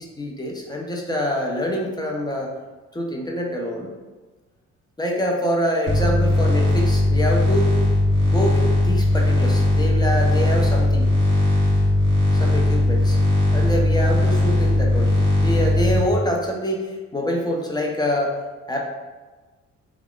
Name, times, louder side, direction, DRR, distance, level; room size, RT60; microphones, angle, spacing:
voice 1, 0.0-2.5 2.9-3.9 5.0-7.7 8.2-11.1 12.4-13.2 13.5-18.4 18.7-18.8, equal, 15° left, -1 dB, 0.5 m, -25 dB
sound 1, 5.9-16.0, left 1 dB, 40° right, 1.4 m, -18 dB
3.4 x 2.3 x 2.3 m, 1.2 s
cardioid pair, 90°, 30 cm